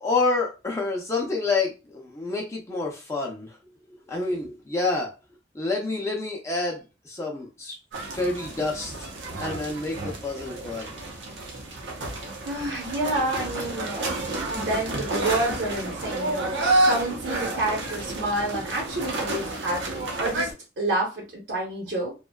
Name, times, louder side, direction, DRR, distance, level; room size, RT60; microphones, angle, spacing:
voice 1, 0.0-3.6 4.1-5.1 5.5-7.8 8.1-9.1 9.4-11.0 16.4-16.6, left 3 dB, 15° left, -1 dB, 0.5 m, -28 dB
sound 1, 7.9-20.5, right 2 dB, 90° right, 0.7 m, -30 dB
voice 2, 12.4-14.1 14.5-22.1, right 1 dB, 60° right, -5 dB, 0.9 m, -29 dB
2.6 x 2.2 x 2.2 m, 0.29 s
head